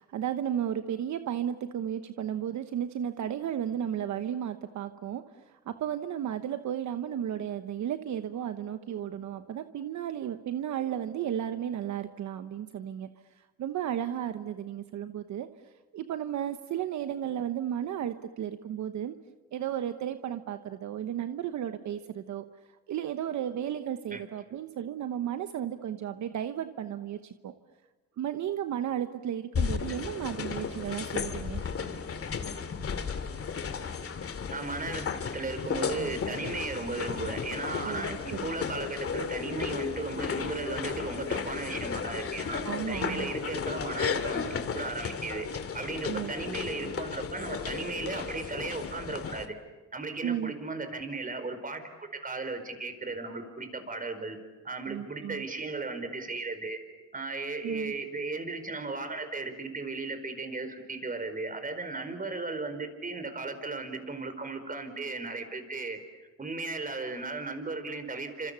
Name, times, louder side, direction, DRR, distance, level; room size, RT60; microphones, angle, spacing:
voice 1, 0.0-13.1 13.3-15.5 15.9-19.2 19.5-22.5 22.9-27.5 28.2-31.6 37.8-38.5 42.6-43.3 46.1-46.3 50.2-50.5 54.9-55.5 57.6-57.9, right 10 dB, 70° right, 9 dB, 1.1 m, -34 dB
sound 1, 29.5-49.5, left 6 dB, 50° left, 2.4 m, -34 dB
voice 2, 34.5-35.1 35.3-44.5 44.7-45.5 45.7-49.5 49.9-54.4 54.6-56.8 57.1-66.0 66.4-68.5, right 3 dB, 30° right, 8 dB, 4.8 m, -36 dB
29.5 x 26.5 x 7.0 m, 1.2 s
cardioid pair, 90°, 30 cm